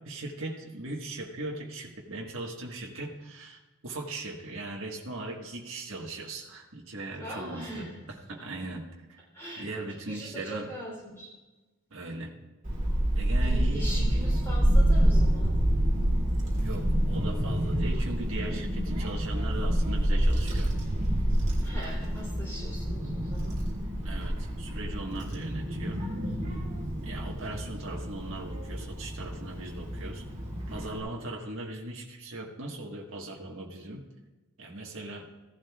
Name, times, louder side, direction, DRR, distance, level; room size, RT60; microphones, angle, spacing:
voice 1, 0.0-9.2 9.6-10.7 11.9-12.3 13.1-13.9 16.6-20.7 24.0-26.0 27.0-30.2 30.7-34.0 34.6-35.2, right 2 dB, 65° right, -1 dB, 1.6 m, -39 dB
voice 2, 7.2-8.0 8.4-8.5 9.3-11.3 13.4-15.6 21.6-23.6 26.7-27.0, right 1 dB, 10° left, -5 dB, 3.4 m, -41 dB
Child speech kid speaking / Wind, 12.6-31.0, right 1 dB, 35° right, 2.6 m, -28 dB
16.5 x 11.5 x 2.4 m, 1.1 s
head